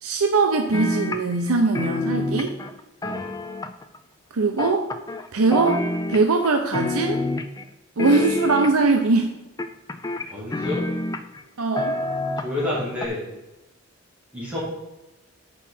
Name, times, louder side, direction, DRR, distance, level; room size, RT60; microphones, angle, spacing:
voice 1, 0.0-2.6 4.3-4.9 5.3-7.2 8.0-9.3 11.6-12.0, right 3 dB, 85° right, 4 dB, 0.7 m, -21 dB
sound 1, 0.7-1.5 1.7-4.0 4.6-5.3 5.5-6.5 6.7-7.6 8.0-9.0 9.6-11.4 11.8-12.7 13.0-13.1, left 2 dB, 15° left, 0.4 m, -27 dB
voice 2, 10.3-10.9 12.4-13.2 14.3-14.6, left 2 dB, 5° right, -9 dB, 2.6 m, -29 dB
8.2 x 5.6 x 4.2 m, 1.0 s
head